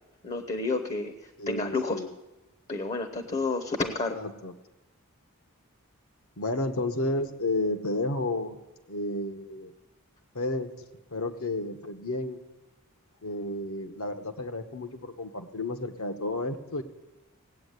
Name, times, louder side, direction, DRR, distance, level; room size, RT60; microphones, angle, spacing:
voice 1, 0.2-2.0 2.7-4.2, left 3 dB, 30° left, 7 dB, 0.8 m, -30 dB
voice 2, 1.4-2.1 4.1-4.5 6.4-8.6 8.9-9.7 10.3-10.7 11.1-12.4 13.2-16.8, left 2 dB, 70° left, 7 dB, 1.2 m, -31 dB
18.0 x 8.4 x 8.1 m, 1.1 s
head